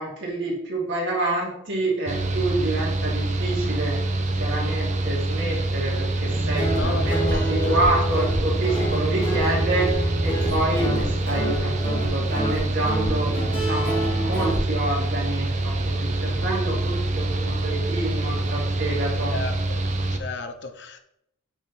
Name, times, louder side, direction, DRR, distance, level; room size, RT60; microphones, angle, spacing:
voice 1, 0.0-19.3, right 2 dB, 55° right, -4 dB, 2.5 m, -28 dB
Mechanical fan, 2.1-20.2, right 2 dB, 35° right, 0.7 m, -26 dB
Guitar, 6.3-14.6, right 1 dB, 25° left, 2.1 m, -27 dB
voice 2, 6.8-7.7 19.3-19.8 20.2-21.0, left 3 dB, 55° left, 8 dB, 0.7 m, -34 dB
7.9 x 4.5 x 4.1 m, 0.78 s
head